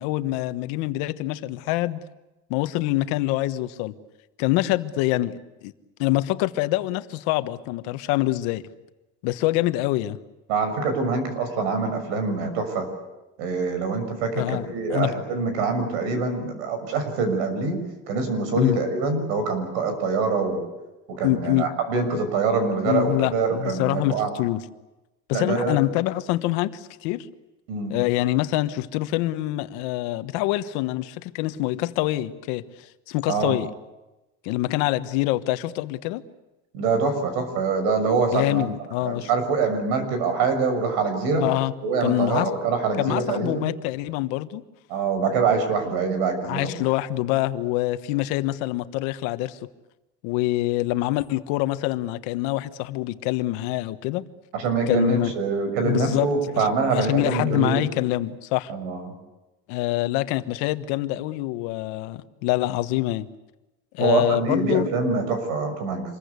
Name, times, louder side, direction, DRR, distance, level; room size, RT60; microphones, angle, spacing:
voice 1, 0.0-2.0 2.5-4.0 4.4-5.7 6.0-8.6 9.2-10.2 14.3-15.1 18.6-18.8 21.2-21.7 22.8-24.6 25.3-27.3 27.9-33.7 34.4-36.2 38.3-39.3 41.4-41.7 42.0-42.5 43.0-44.6 46.4-49.6 50.2-54.2 54.9-55.3 55.8-56.3 56.5-58.7 59.7-63.3 63.9-64.9, left 17 dB, 75° left, 11 dB, 1.3 m, -25 dB
voice 2, 10.5-12.9 13.4-17.8 18.1-20.6 21.2-24.3 25.3-25.8 27.7-28.0 33.3-33.6 36.7-38.7 39.0-41.4 41.8-43.7 44.9-46.7 54.5-57.8 58.7-59.1 64.0-66.0, right 4 dB, 90° right, 8 dB, 6.5 m, -24 dB
26.5 x 22.0 x 8.3 m, 1.0 s
cardioid pair, 170°, 30 cm